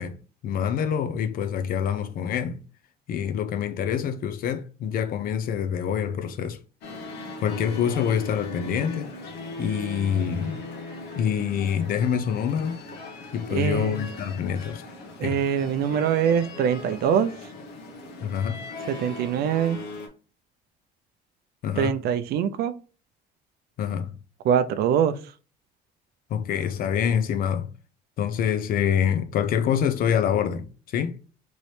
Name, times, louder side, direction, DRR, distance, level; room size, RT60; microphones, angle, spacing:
voice 1, 0.0-2.6 3.1-6.6 7.4-9.1 9.6-10.6 11.2-12.8 13.3-14.8 15.2-15.4 18.2-18.6 21.6-22.0 23.8-24.2 26.3-27.7 28.2-31.2, left 8 dB, 60° left, 0.5 m, -26 dB
sound 1, 6.8-20.1, left 2 dB, 80° left, 1.0 m, -39 dB
voice 2, 13.5-14.0 15.2-17.3 18.9-19.8 21.8-22.7 24.4-25.3, right 8 dB, 70° right, 0.4 m, -23 dB
3.1 x 2.7 x 3.2 m
cardioid pair, 110°, 17 cm